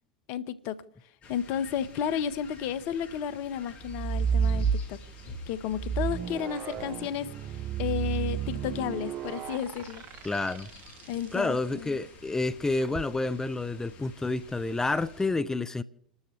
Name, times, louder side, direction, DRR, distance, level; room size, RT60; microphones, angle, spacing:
voice 1, 0.3-0.7 1.3-5.0 5.5-7.3 7.8-10.0 11.1-12.0, left 9 dB, 50° left, 1.3 m, -32 dB
sound 1, 1.2-15.3, left 2 dB, 35° left, 6.9 m, -50 dB
sound 2, 3.8-5.2 5.7-11.2 12.7-13.1, right 7 dB, 40° right, 0.7 m, -31 dB
voice 2, 10.2-10.7 11.3-15.8, left 3 dB, 10° left, 0.7 m, -29 dB
29.5 x 12.5 x 3.3 m
figure-of-eight pair, 80°, 4 cm